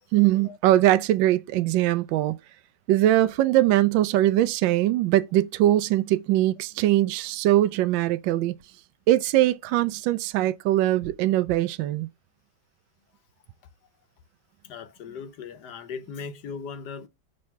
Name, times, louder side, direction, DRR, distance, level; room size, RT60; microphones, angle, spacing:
voice 1, 0.1-2.4 2.9-8.5 9.1-12.1, right 14 dB, 75° right, 1.2 m, -21 dB
voice 2, 14.6-17.1, left 5 dB, 65° left, 1.2 m, -38 dB
6.5 x 3.2 x 5.7 m
omnidirectional pair, 2.2 m